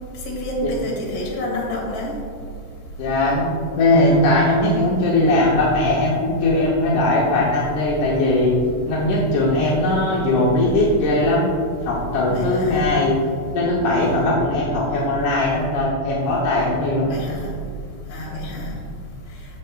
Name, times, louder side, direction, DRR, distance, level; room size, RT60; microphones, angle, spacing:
voice 1, 0.2-2.1 12.3-12.9 17.1-17.5 18.1-18.7, equal, 60° left, -3 dB, 2.8 m, -28 dB
voice 2, 3.0-8.6 8.9-11.5 11.8-13.2 13.5-17.1, left 2 dB, 80° left, -5 dB, 2.5 m, -19 dB
15.0 x 5.6 x 2.4 m, 2.3 s
omnidirectional pair, 3.6 m